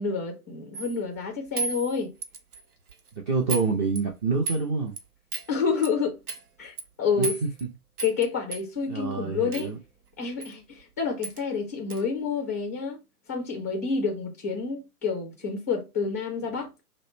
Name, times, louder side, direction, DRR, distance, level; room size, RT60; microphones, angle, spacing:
voice 1, 0.0-2.1 5.5-6.2 6.6-7.4 8.0-9.7 10.2-13.0 13.3-16.7, left 5 dB, 10° left, 0.3 m, -29 dB
sound 1, 0.7-1.0 1.6-2.6 2.9-3.1 3.5-3.7 4.0-4.6 5.0-5.1 5.3-5.5 5.8-5.9 6.3-6.4 6.8-6.9 7.2-7.6 8.0-8.3 8.5-8.6 9.5-9.7 10.4-10.5 10.8-10.9 11.2-11.4 11.9-12.0, right 4 dB, 80° right, 1.0 m, -33 dB
voice 2, 3.3-5.0 7.1-7.3 8.9-9.8, right 4 dB, 30° right, 0.8 m, -27 dB
5.2 x 2.1 x 4.1 m
hypercardioid pair, 135°, 44 cm